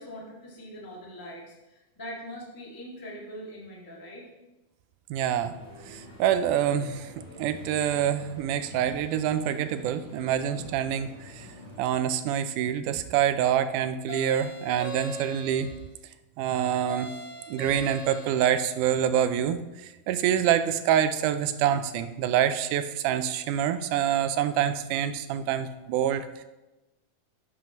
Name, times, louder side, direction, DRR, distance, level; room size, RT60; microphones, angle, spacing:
voice 1, 0.0-4.3, equal, 10° left, -4 dB, 1.2 m, -42 dB
voice 2, 5.1-5.5 5.8-11.5 11.8-15.7 16.4-17.1 17.5-26.4, right 10 dB, 85° right, 10 dB, 2.1 m, -26 dB
sound 1, 5.5-11.8, left 1 dB, 5° right, 3.0 m, -47 dB
sound 2, 14.1-15.8 16.9-18.7, right 1 dB, 60° left, 3.9 m, -39 dB
12.0 x 7.6 x 3.0 m, 1.0 s
omnidirectional pair, 3.6 m